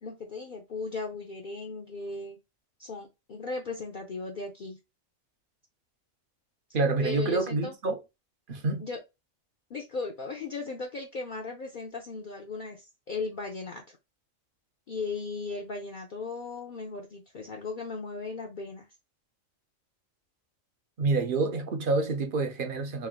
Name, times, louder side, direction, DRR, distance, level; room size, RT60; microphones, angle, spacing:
voice 1, 0.0-2.4 2.8-4.8 7.0-7.7 8.8-9.0 9.7-14.0 14.9-18.9, left 4 dB, 50° left, 0.7 m, -37 dB
voice 2, 6.7-8.0 8.5-8.9 21.0-23.1, right 3 dB, 50° right, 0.8 m, -27 dB
3.3 x 2.5 x 3.7 m
omnidirectional pair, 1.3 m